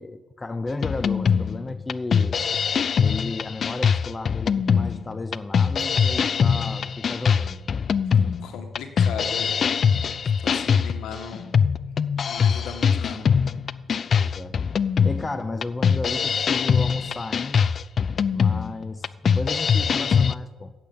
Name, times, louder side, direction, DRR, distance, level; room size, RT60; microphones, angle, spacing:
voice 1, 0.0-2.4 3.0-7.7 14.1-14.6 15.0-17.7 18.3-20.7, left 2 dB, 20° left, 11 dB, 0.7 m, -33 dB
sound 1, 0.8-20.3, left 6 dB, 50° left, 0.5 m, -22 dB
voice 2, 8.4-10.0 10.4-11.5 12.2-13.3, left 6 dB, 80° left, 6 dB, 1.9 m, -37 dB
14.5 x 8.4 x 8.7 m, 1.3 s
cardioid pair, 90°, 0 cm